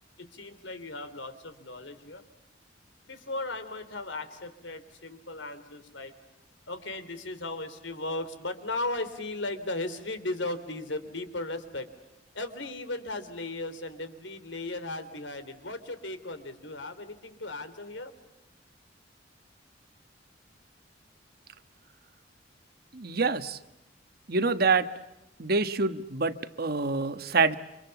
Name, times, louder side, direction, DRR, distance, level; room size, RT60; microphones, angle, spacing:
voice 1, 0.2-2.2 3.0-6.1 6.7-11.9 12.3-18.1, left 2 dB, 80° left, 10 dB, 3.4 m, -36 dB
voice 2, 22.9-23.6 24.3-24.9 25.4-27.6, right 4 dB, 55° right, 11 dB, 1.4 m, -26 dB
29.5 x 26.5 x 7.1 m, 0.95 s
head